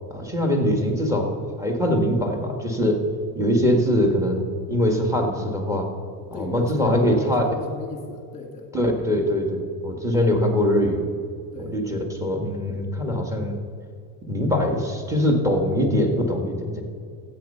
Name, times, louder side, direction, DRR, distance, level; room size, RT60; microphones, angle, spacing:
voice 1, 0.1-3.0 3.4-4.4 4.7-5.9 6.3-7.4 8.7-11.0 11.6-13.6 14.2-16.8, equal, 5° right, 2 dB, 1.8 m, -22 dB
voice 2, 6.3-8.7 10.0-10.2 11.5-11.8, left 3 dB, 15° left, 2 dB, 2.2 m, -37 dB
13.5 x 8.4 x 5.6 m, 2.2 s
cardioid pair, 130°, 48 cm